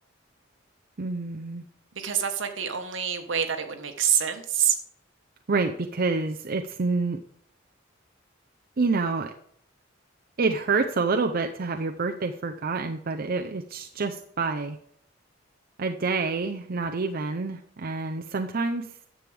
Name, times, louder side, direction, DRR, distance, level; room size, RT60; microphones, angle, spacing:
voice 1, 1.0-1.6 5.5-7.2 8.8-9.3 10.4-14.8 15.8-18.9, right 4 dB, 50° right, 4 dB, 0.6 m, -27 dB
voice 2, 1.9-4.8, right 8 dB, 75° right, 6 dB, 1.3 m, -26 dB
10.5 x 7.6 x 3.4 m, 0.67 s
head